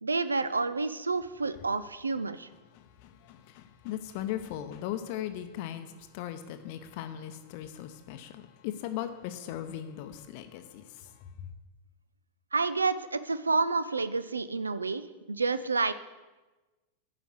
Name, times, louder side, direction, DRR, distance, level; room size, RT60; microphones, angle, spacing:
voice 1, 0.0-2.5 12.5-15.9, right 4 dB, 75° right, 13 dB, 0.4 m, -29 dB
voice 2, 2.7-11.1, left 11 dB, 45° left, 8 dB, 0.6 m, -38 dB
9.9 x 5.0 x 6.5 m, 1.2 s
figure-of-eight pair, 90°, 0 cm